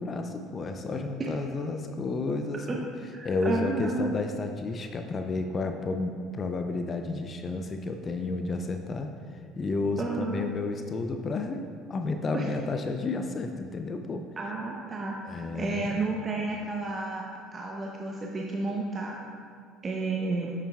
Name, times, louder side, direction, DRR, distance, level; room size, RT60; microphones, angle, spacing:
voice 1, 0.0-2.8 3.2-14.2 15.2-16.0, left 3 dB, 35° left, 6 dB, 0.6 m, -31 dB
voice 2, 3.1-4.1 10.0-10.4 12.3-12.4 14.4-15.2 15.5-17.2 17.5-19.2 19.8-20.5, right 3 dB, 30° right, -1 dB, 0.8 m, -31 dB
9.9 x 7.3 x 2.4 m, 2.4 s
hypercardioid pair, 60°, 0 cm